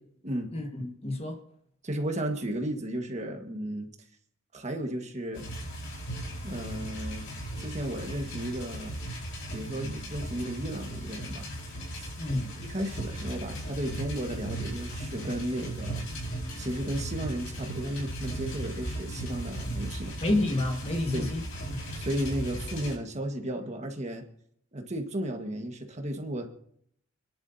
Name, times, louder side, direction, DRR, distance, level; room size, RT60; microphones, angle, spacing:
voice 1, 0.5-1.4 12.2-12.5 20.2-21.8, left 1 dB, 30° left, 1.6 m, -29 dB
voice 2, 1.8-3.9 4.5-5.5 6.4-7.3 7.6-9.0 9.5-11.5 12.0-12.1 12.7-16.0 16.6-20.1 21.1-21.3 21.9-24.2 24.7-26.5, right 1 dB, 35° right, 1.6 m, -34 dB
sound 1, 5.3-22.9, right 1 dB, 65° left, 5.0 m, -37 dB
28.5 x 11.0 x 2.8 m
head